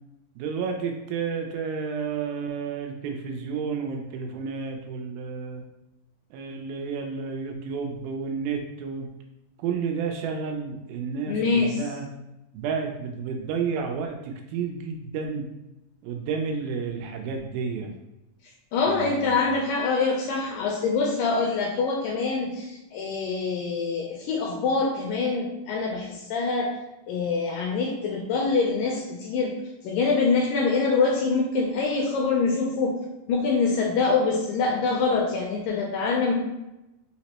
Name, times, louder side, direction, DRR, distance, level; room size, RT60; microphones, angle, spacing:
voice 1, 0.4-5.6 6.3-9.1 9.6-12.1 12.5-15.5 16.0-17.9 18.9-19.4, right 5 dB, 85° right, 3 dB, 2.3 m, -31 dB
voice 2, 11.3-11.9 18.7-26.7 27.1-29.5 29.8-33.0 33.3-36.3, left 4 dB, 80° left, 0 dB, 2.0 m, -25 dB
5.7 x 2.0 x 2.8 m, 0.94 s
omnidirectional pair, 4.2 m